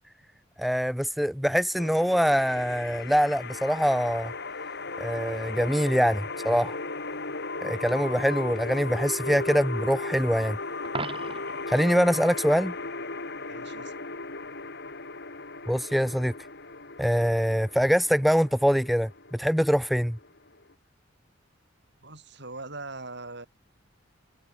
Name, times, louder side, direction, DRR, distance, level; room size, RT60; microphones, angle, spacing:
voice 1, 0.6-4.3 5.0-6.8 7.6-10.6 11.7-12.7 15.7-16.3 17.0-20.2, equal, ahead, 0.4 m, -24 dB
sound 1, 1.7-20.7, left 3 dB, 60° left, 4.3 m, -36 dB
Coin (dropping), 10.8-11.7 17.8-18.0, right 3 dB, 30° right, 3.2 m, -36 dB
voice 2, 13.5-14.0 22.0-23.5, right 3 dB, 60° right, 7.8 m, -41 dB
head